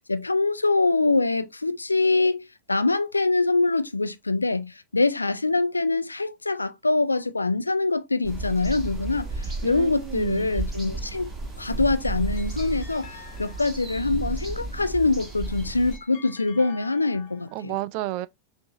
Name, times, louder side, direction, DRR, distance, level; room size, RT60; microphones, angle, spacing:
voice 1, 0.1-11.3 11.6-17.7, left 3 dB, 80° left, 0.4 m, -24 dB
sound 1, 8.2-16.0, right 2 dB, 15° right, 1.5 m, -33 dB
voice 2, 9.6-10.5 17.5-18.3, right 16 dB, 45° right, 0.3 m, -31 dB
sound 2, 12.0-14.3 15.2-17.7, left 7 dB, 45° left, 1.1 m, -48 dB
6.0 x 2.6 x 2.8 m
figure-of-eight pair, 90°, 0 cm